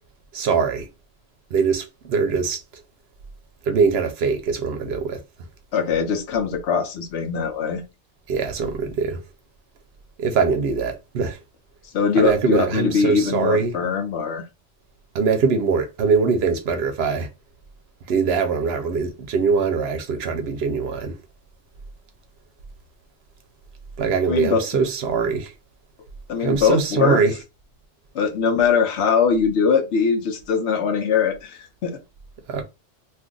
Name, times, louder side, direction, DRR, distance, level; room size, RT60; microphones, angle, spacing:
voice 1, 0.3-0.9 1.5-2.6 3.7-5.2 8.3-9.2 10.2-11.4 12.2-13.7 15.1-17.3 18.1-21.2 24.0-25.5 26.4-27.3 32.5-32.6, right 5 dB, 65° right, 0.8 m, -22 dB
voice 2, 5.7-7.8 11.9-14.5 24.3-24.6 26.3-27.2 28.1-32.0, left 6 dB, 70° left, 0.9 m, -21 dB
2.5 x 2.4 x 3.7 m
omnidirectional pair, 1.2 m